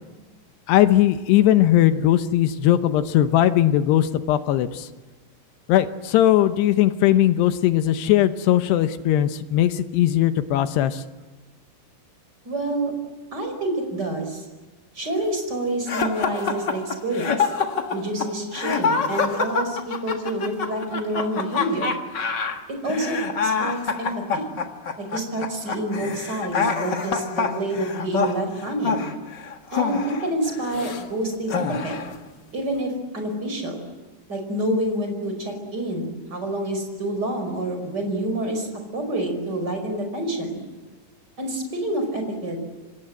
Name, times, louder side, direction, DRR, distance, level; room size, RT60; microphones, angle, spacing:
voice 1, 0.7-4.9 5.7-11.0, left 12 dB, 80° left, 10 dB, 3.0 m, -19 dB
voice 2, 12.4-12.9 13.3-14.5 14.9-17.5 17.9-21.9 22.8-24.5 25.0-29.0 29.7-32.0 32.5-33.8 34.3-38.7 38.9-40.6 41.4-42.6, right 1 dB, 25° right, 5 dB, 5.6 m, -28 dB
sound 1, 15.9-31.0 31.5-32.2, left 5 dB, 55° left, 1.2 m, -26 dB
28.0 x 26.0 x 7.9 m, 1.3 s
omnidirectional pair, 4.8 m